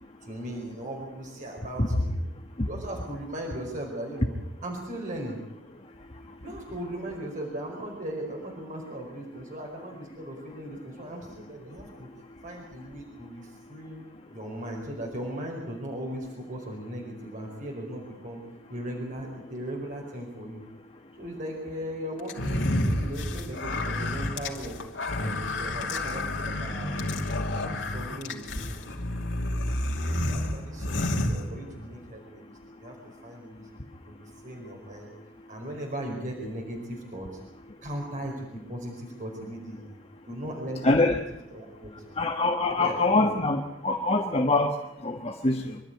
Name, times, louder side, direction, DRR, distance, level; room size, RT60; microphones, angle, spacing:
voice 1, 0.2-2.1 2.7-5.4 6.4-12.1 12.4-14.0 14.3-18.4 18.7-20.6 21.2-24.8 25.2-27.2 27.5-29.1 29.5-33.0 33.2-33.7 34.1-35.1 35.5-37.4 37.8-40.0 40.3-41.1 41.5-42.2 42.8-43.4, right 1 dB, 40° right, 0 dB, 4.8 m, -38 dB
sound 1, 22.3-32.0, left 1 dB, 75° left, 2.7 m, -30 dB
voice 2, 40.8-41.2 42.2-45.8, left 2 dB, 30° left, 2 dB, 1.4 m, -24 dB
25.5 x 12.5 x 9.4 m, 0.87 s
head